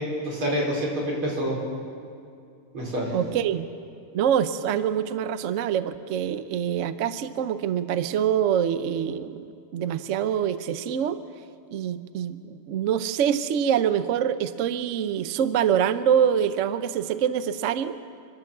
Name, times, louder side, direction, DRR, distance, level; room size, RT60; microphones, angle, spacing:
voice 1, 0.0-1.6 2.7-3.2, equal, 70° right, -3 dB, 5.7 m, -27 dB
voice 2, 3.1-3.7 4.1-11.2 11.7-18.0, right 9 dB, 85° right, 12 dB, 0.6 m, -25 dB
30.0 x 12.0 x 7.4 m, 2.4 s
omnidirectional pair, 2.4 m